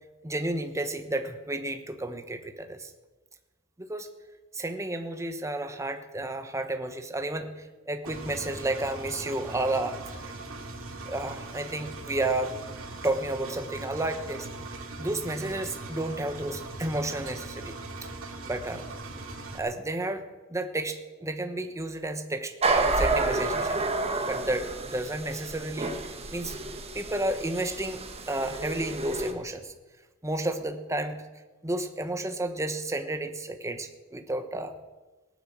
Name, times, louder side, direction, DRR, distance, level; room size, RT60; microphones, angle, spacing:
voice 1, 0.2-2.9 3.8-4.1 4.5-10.0 10.2-10.3 11.1-12.6 13.0-14.5 15.0-18.1 18.4-18.9 19.5-20.2 20.5-23.9 24.3-26.5 26.9-29.7 30.2-31.2 31.6-34.7, right 1 dB, 15° right, 7 dB, 1.1 m, -32 dB
Engine, 8.0-19.6, right 2 dB, 70° right, 2.5 m, -40 dB
sound 1, 22.6-29.3, right 3 dB, 30° right, 1.5 m, -30 dB
18.0 x 9.5 x 7.9 m, 1.2 s
head